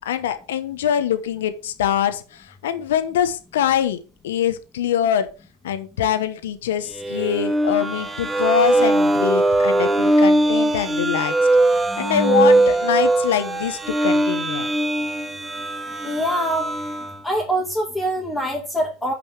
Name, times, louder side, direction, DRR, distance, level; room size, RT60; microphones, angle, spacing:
voice 1, 0.0-4.0 4.2-5.3 5.6-11.4 12.0-14.7, left 9 dB, 90° left, 11 dB, 0.9 m, -24 dB
sound 1, 7.0-17.2, right 1 dB, 10° right, 1.0 m, -20 dB
voice 2, 16.0-16.7 17.2-19.1, right 1 dB, 5° left, -5 dB, 2.1 m, -24 dB
6.0 x 5.4 x 6.0 m, 0.34 s
supercardioid pair, 115°, 0 cm